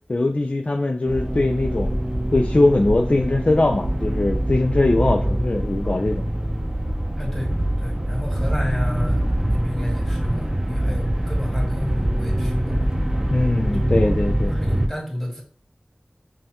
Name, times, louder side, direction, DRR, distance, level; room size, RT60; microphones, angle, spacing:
voice 1, 0.1-1.9 2.3-6.3 13.3-14.5, left 2 dB, 50° left, 2 dB, 0.4 m, -21 dB
sound 1, 1.1-14.9, right 1 dB, 25° right, 0.6 m, -24 dB
voice 2, 7.2-7.5 7.8-9.2 9.5-12.9 13.7-14.2 14.5-15.4, left 1 dB, 10° left, -3 dB, 1.7 m, -31 dB
5.3 x 2.3 x 2.9 m, 0.42 s
wide cardioid pair, 45°, 3 cm